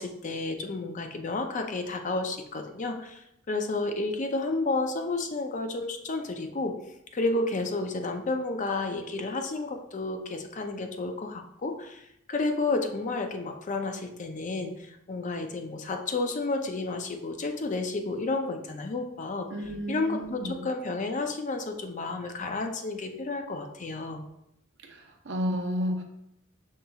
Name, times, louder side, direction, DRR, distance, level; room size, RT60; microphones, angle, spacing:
voice 1, 0.0-3.2 3.5-6.8 7.1-12.0 12.3-19.5 19.9-24.2, left 3 dB, 40° left, 5 dB, 0.5 m, -31 dB
voice 2, 19.5-20.6 24.8-26.0, equal, 65° right, 3 dB, 0.7 m, -32 dB
5.5 x 3.8 x 2.3 m, 0.79 s
head